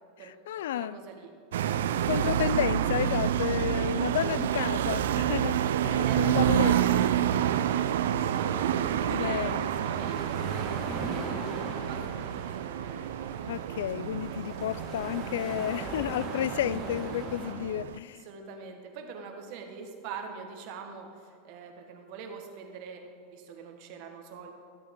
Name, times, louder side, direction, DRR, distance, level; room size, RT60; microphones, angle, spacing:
voice 1, 0.2-1.0 2.1-7.0 9.1-9.7 13.5-18.2, left 11 dB, 85° left, 18 dB, 0.3 m, -32 dB
voice 2, 0.7-1.3 5.9-11.4 11.8-13.3 18.2-23.0 23.3-24.5, right 5 dB, 50° right, 4 dB, 1.4 m, -43 dB
sound 1, 1.5-18.0, right 10 dB, 90° right, 0.4 m, -29 dB
sound 2, 6.1-17.5, right 2 dB, 30° right, 1.7 m, -40 dB
13.5 x 7.5 x 3.7 m, 2.5 s
supercardioid pair, 150°, 0 cm